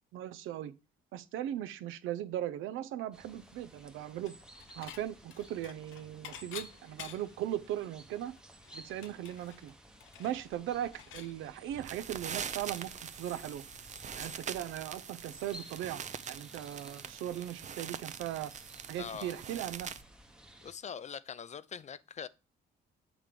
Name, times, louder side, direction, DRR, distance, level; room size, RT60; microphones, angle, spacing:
voice 1, 0.1-0.7 1.1-4.3 4.7-8.3 8.7-9.7 10.2-13.6 14.1-16.0 16.3-18.5 18.9-19.9, right 12 dB, 85° right, 0.5 m, -38 dB
sound 1, 3.1-20.7, equal, 5° right, 0.8 m, -55 dB
Dishes pots and pans / Chink clink, 4.3-5.0 5.3-7.4 7.8-7.9 8.2-11.3, left 10 dB, 85° left, 0.6 m, -49 dB
sound 2, 11.7-20.0, right 7 dB, 35° right, 0.4 m, -43 dB
voice 2, 19.0-19.4 20.6-22.3, left 7 dB, 35° left, 0.4 m, -42 dB
7.3 x 3.3 x 5.1 m
cardioid pair, 90°, 20 cm